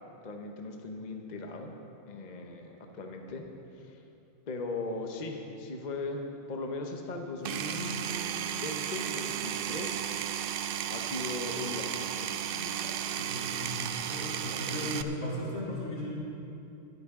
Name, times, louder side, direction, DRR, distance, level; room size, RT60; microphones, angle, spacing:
voice 1, 0.2-1.7 2.1-3.5 3.7-4.0 4.5-10.1 10.9-13.2, left 3 dB, 40° left, 3 dB, 0.9 m, -39 dB
Power tool, 7.4-15.0, right 9 dB, 65° right, 0.5 m, -34 dB
voice 2, 13.2-16.1, left 1 dB, 85° left, -7 dB, 3.8 m, -36 dB
22.0 x 9.2 x 3.7 m, 2.8 s
omnidirectional pair, 1.4 m